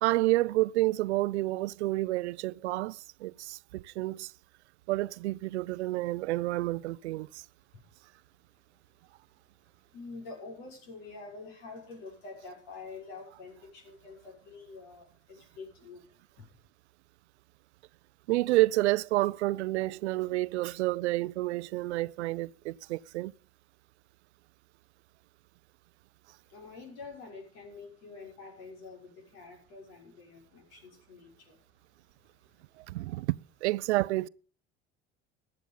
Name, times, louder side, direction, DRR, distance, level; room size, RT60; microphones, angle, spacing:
voice 1, 0.0-4.3 4.9-7.4 18.3-23.3 32.8-34.3, right 18 dB, 80° right, 0.5 m, -29 dB
voice 2, 9.7-16.0 16.4-16.5 26.5-31.7 32.4-32.6, left 4 dB, 75° left, 6.0 m, -47 dB
15.0 x 9.9 x 5.4 m
hypercardioid pair, 65°, 33 cm